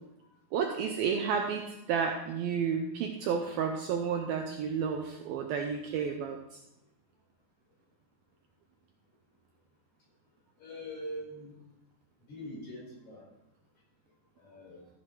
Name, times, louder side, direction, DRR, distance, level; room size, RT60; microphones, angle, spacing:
voice 1, 0.5-6.4, right 6 dB, 75° right, 3 dB, 2.3 m, -31 dB
voice 2, 10.6-11.5 12.3-13.2 14.4-14.8, equal, 45° left, -4 dB, 5.7 m, -42 dB
14.5 x 7.7 x 4.5 m, 0.87 s
omnidirectional pair, 4.9 m